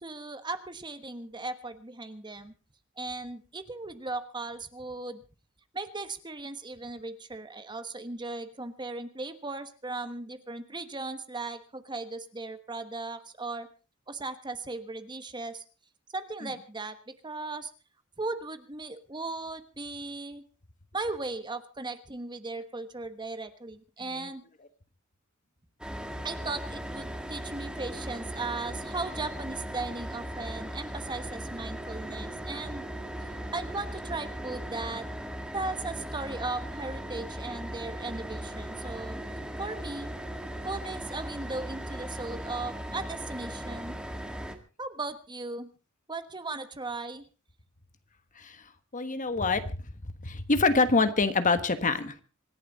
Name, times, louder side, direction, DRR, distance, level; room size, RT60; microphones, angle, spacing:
voice 1, 0.0-2.5 3.0-5.2 5.7-13.7 14.1-15.6 16.1-17.7 18.2-20.4 20.9-24.4 26.2-32.9 33.5-35.1 35.5-39.2 39.6-40.1 40.6-44.0 44.8-45.7 46.1-47.2, right 3 dB, 20° right, 10 dB, 1.3 m, -37 dB
sound 1, 25.8-44.5, right 1 dB, 5° right, 1.8 m, -38 dB
voice 2, 48.9-49.8 50.0-52.1, left 3 dB, 40° left, 10 dB, 1.3 m, -26 dB
26.0 x 11.0 x 4.0 m, 0.35 s
head